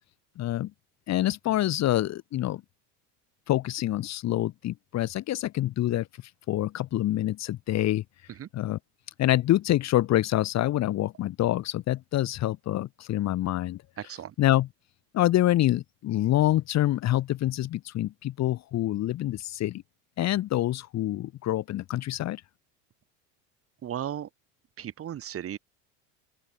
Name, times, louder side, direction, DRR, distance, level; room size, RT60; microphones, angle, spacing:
voice 1, 0.4-0.7 1.1-2.6 3.5-6.1 6.5-8.0 8.5-8.8 9.2-13.8 14.4-14.7 15.1-19.8 20.2-22.4, left 14 dB, 40° left, 1.8 m, -26 dB
voice 2, 14.0-14.4 23.8-24.3 24.8-25.6, right 10 dB, 35° right, 3.4 m, -35 dB
open air
supercardioid pair, 125°, 39 cm